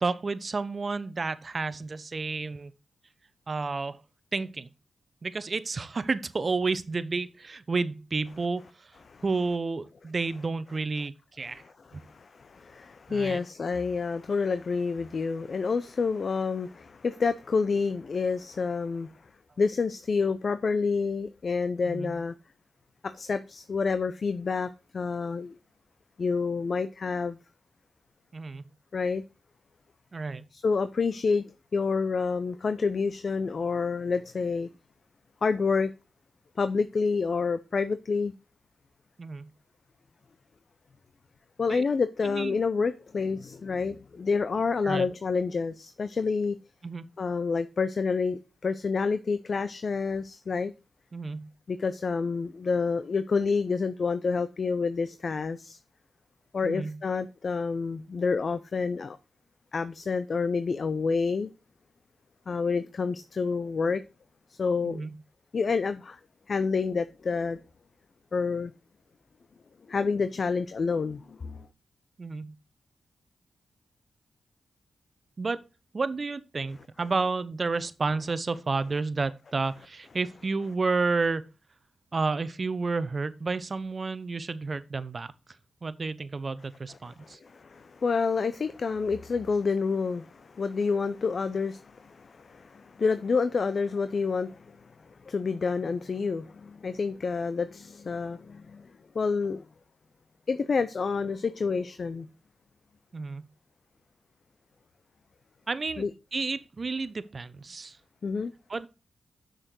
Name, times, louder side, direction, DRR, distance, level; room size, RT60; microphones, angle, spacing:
voice 1, 0.0-2.7 3.5-4.0 4.3-4.7 5.2-9.0 9.2-11.6 11.9-12.0 13.1-13.4 21.8-22.1 28.3-28.6 30.1-30.4 39.2-39.5 41.7-41.8 42.2-42.6 44.8-45.1 46.8-47.0 51.1-51.5 56.6-57.0 64.8-65.1 72.2-72.5 75.4-75.6 75.9-81.4 82.1-85.3 85.8-87.4 103.1-103.5 105.7-106.1 106.3-108.0 108.7-108.9, right 4 dB, 45° right, 0.8 m, -31 dB
voice 2, 8.9-9.5 10.2-10.4 11.4-19.1 19.6-22.3 23.0-25.6 26.2-27.4 28.9-29.2 30.5-34.7 35.4-35.9 36.6-38.3 41.6-46.6 47.2-50.7 51.7-55.8 56.5-59.2 59.7-61.5 62.5-64.0 64.5-65.1 65.5-66.2 66.5-67.6 68.3-68.7 69.9-71.7 76.7-77.3 78.1-78.3 78.8-78.9 79.6-80.7 86.9-94.8 95.2-99.6 100.5-102.3 106.0-106.1 108.2-108.5, left 4 dB, 60° left, 0.6 m, -29 dB
6.6 x 6.4 x 6.1 m
cardioid pair, 50°, 0 cm